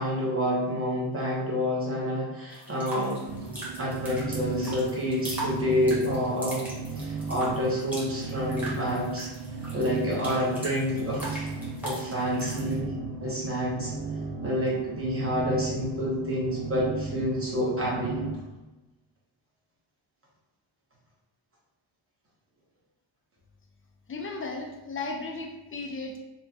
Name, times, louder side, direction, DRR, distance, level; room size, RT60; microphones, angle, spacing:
voice 1, 0.0-3.2 3.8-6.7 7.0-9.3 9.7-11.5 11.8-12.9 13.2-13.9 14.4-18.2, equal, 30° right, -5 dB, 0.9 m, -28 dB
sound 1, 2.5-12.8, right 1 dB, 5° right, 1.1 m, -40 dB
sound 2, 3.3-18.3, right 4 dB, 70° right, 0.7 m, -36 dB
voice 2, 24.1-26.2, left 3 dB, 30° left, 1 dB, 0.5 m, -35 dB
4.2 x 2.2 x 2.6 m, 1.1 s
wide cardioid pair, 140°, 46 cm